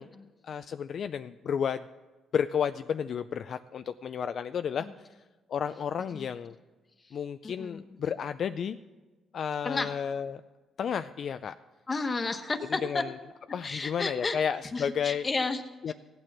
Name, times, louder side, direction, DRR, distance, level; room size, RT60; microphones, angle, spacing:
voice 1, 0.4-1.8 2.3-5.1 5.5-6.6 7.1-8.8 9.3-10.4 10.8-11.5 12.8-13.1 13.5-15.3 15.8-15.9, left 7 dB, 60° left, 10 dB, 0.4 m, -32 dB
voice 2, 6.0-6.3 7.0-7.2 7.4-8.0 9.6-9.9 11.9-13.0 13.6-14.4 14.7-15.9, left 3 dB, 30° left, 8 dB, 1.2 m, -33 dB
15.0 x 9.0 x 6.1 m, 1.2 s
cardioid pair, 90°, 0 cm